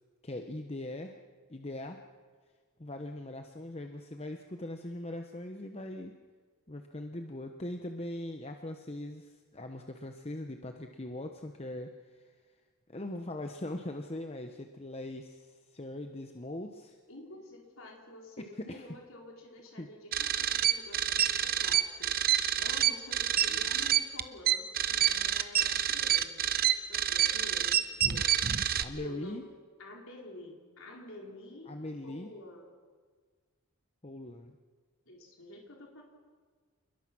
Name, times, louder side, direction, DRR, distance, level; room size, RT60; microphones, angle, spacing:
voice 1, 0.2-1.1 1.5-2.0 2.8-6.1 6.7-12.3 12.9-17.0 18.6-18.9 19.8-19.9 28.8-29.4 31.7-32.3 34.0-34.5, left 1 dB, 30° left, 5 dB, 1.0 m, -41 dB
voice 2, 17.1-26.5 26.7-28.4 28.6-29.5 29.8-31.8 32.0-32.7 35.1-36.0, left 1 dB, 65° left, 0 dB, 4.4 m, -49 dB
sound 1, 20.1-28.8, right 11 dB, 45° right, 0.9 m, -27 dB
28.0 x 21.0 x 6.1 m, 1.5 s
head